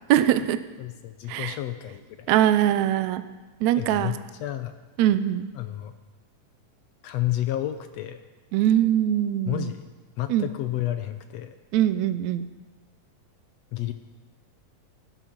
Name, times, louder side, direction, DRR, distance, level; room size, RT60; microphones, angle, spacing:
voice 1, 0.1-0.6 1.3-1.6 2.3-3.2 3.6-4.2 5.0-5.5 8.5-9.7 10.3-10.5 11.7-12.5, right 11 dB, 75° right, 12 dB, 1.8 m, -22 dB
voice 2, 0.8-2.3 3.8-4.8 5.5-5.9 7.0-8.2 9.5-9.8 10.2-11.6 13.7-13.9, left 14 dB, 75° left, 9 dB, 1.6 m, -31 dB
18.0 x 12.0 x 6.0 m, 1.2 s
omnidirectional pair, 3.7 m